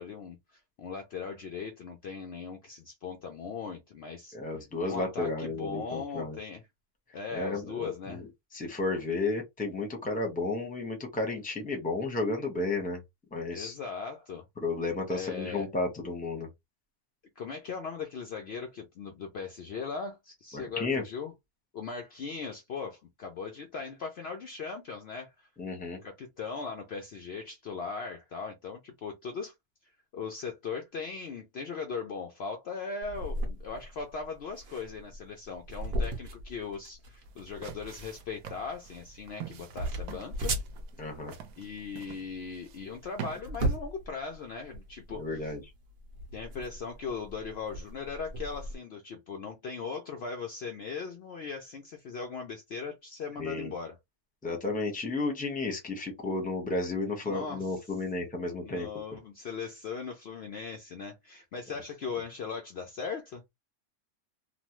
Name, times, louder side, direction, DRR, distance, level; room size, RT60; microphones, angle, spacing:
voice 1, 0.0-4.3 4.9-6.6 7.1-8.2 13.5-14.4 15.1-15.7 17.4-21.3 21.7-25.5 26.0-29.5 30.1-40.6 41.6-45.5 46.3-54.0 57.3-57.7 58.6-63.4, left 5 dB, 80° left, 0.5 m, -39 dB
voice 2, 4.3-6.4 7.3-8.3 8.5-13.0 13.3-13.7 14.6-16.5 20.5-21.0 25.6-26.0 41.0-41.3 45.1-45.6 53.4-53.7 54.4-58.9, left 3 dB, 10° left, 0.5 m, -32 dB
sound 1, 33.0-48.7, right 1 dB, 50° right, 0.8 m, -38 dB
sound 2, 37.3-43.4, right 10 dB, 75° right, 1.1 m, -46 dB
3.0 x 2.0 x 2.9 m
omnidirectional pair, 1.7 m